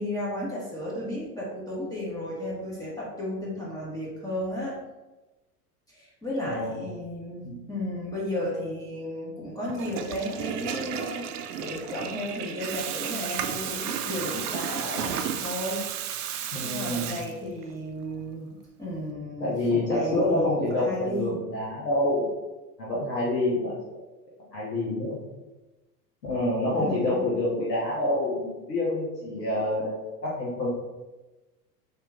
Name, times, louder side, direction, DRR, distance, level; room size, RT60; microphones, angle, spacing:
voice 1, 0.0-4.8 5.9-15.9 16.6-21.4 26.7-27.3, left 1 dB, 10° left, -7 dB, 1.1 m, -34 dB
voice 2, 6.4-6.8 7.4-7.6 16.5-17.2 19.4-22.2 22.8-23.7 24.5-25.2 26.2-30.7, left 1 dB, 85° left, -6 dB, 1.1 m, -27 dB
Water tap faucet / Toilet flush, 9.7-17.7, right 9 dB, 70° right, 0.5 m, -33 dB
3.5 x 2.9 x 3.5 m, 1.1 s
hypercardioid pair, 85°, 48 cm